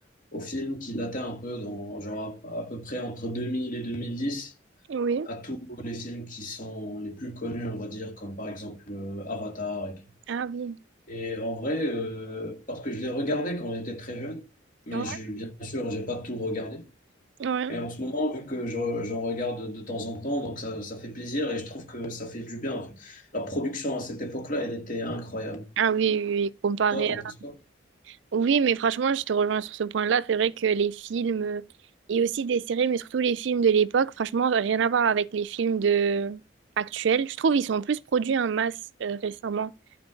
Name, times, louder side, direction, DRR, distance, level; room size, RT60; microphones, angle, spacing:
voice 1, 0.3-4.5 5.3-10.0 11.1-14.4 14.9-16.9 17.7-25.7 26.9-27.5, left 1 dB, 40° left, 2.1 m, -32 dB
voice 2, 4.9-5.3 10.3-10.8 14.9-15.2 17.4-17.8 25.8-27.2 28.1-31.6 32.1-36.4 36.8-39.7, right 6 dB, 65° right, 0.4 m, -25 dB
11.5 x 4.6 x 6.3 m
head